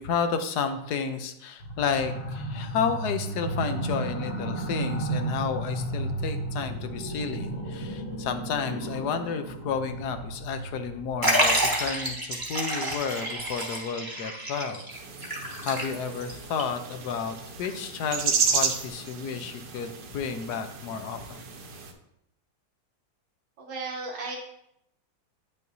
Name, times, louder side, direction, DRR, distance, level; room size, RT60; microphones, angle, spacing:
voice 1, 0.0-14.8 15.6-21.4, left 6 dB, 70° left, 8 dB, 1.1 m, -31 dB
sound 1, 1.6-12.1, right 2 dB, 40° left, 1.0 m, -34 dB
Liquid, 11.2-16.3 16.6-16.7 17.6-17.7, right 1 dB, 15° right, 1.0 m, -28 dB
sound 2, 14.9-21.9, right 5 dB, 70° right, 1.3 m, -32 dB
voice 2, 23.6-24.4, right 3 dB, 85° right, -4 dB, 1.6 m, -34 dB
9.2 x 5.7 x 2.7 m, 0.79 s
omnidirectional pair, 1.9 m